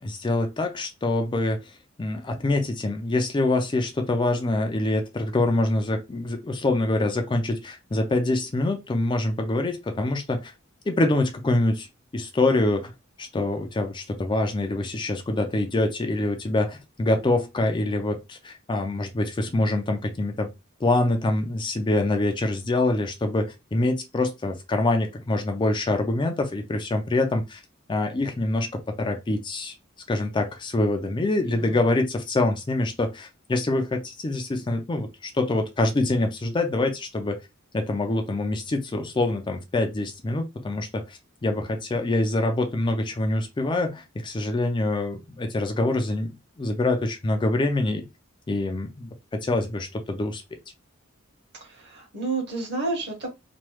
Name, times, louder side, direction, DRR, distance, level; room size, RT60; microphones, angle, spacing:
voice 1, 0.0-10.5 10.9-11.9 12.1-12.9 13.2-20.5 20.8-27.6 27.9-29.7 30.1-37.4 37.7-48.0 48.5-50.4, left 2 dB, 25° left, 0.4 m, -25 dB
voice 2, 31.4-31.8 51.6-53.3, right 3 dB, 55° right, 1.4 m, -30 dB
3.0 x 2.2 x 3.1 m
head